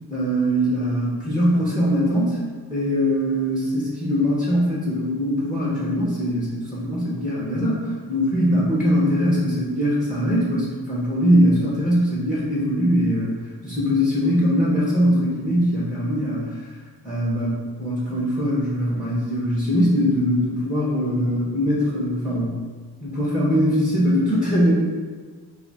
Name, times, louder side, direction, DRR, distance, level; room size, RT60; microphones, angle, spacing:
voice 1, 0.1-2.4 2.7-13.3 13.6-16.6 17.0-22.6 23.0-24.9, equal, 20° left, -7 dB, 0.8 m, -21 dB
2.6 x 2.4 x 4.0 m, 1.5 s
wide cardioid pair, 55°, 39 cm